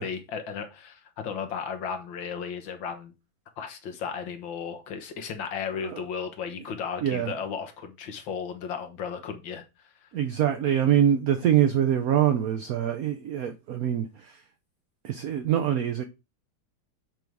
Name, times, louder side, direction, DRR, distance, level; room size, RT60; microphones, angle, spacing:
voice 1, 0.0-3.1 3.6-10.1, left 6 dB, 70° left, 1.8 m, -35 dB
voice 2, 7.0-7.3 10.1-14.4 15.0-16.0, right 10 dB, 70° right, 0.8 m, -24 dB
7.8 x 3.6 x 4.6 m
omnidirectional pair, 2.2 m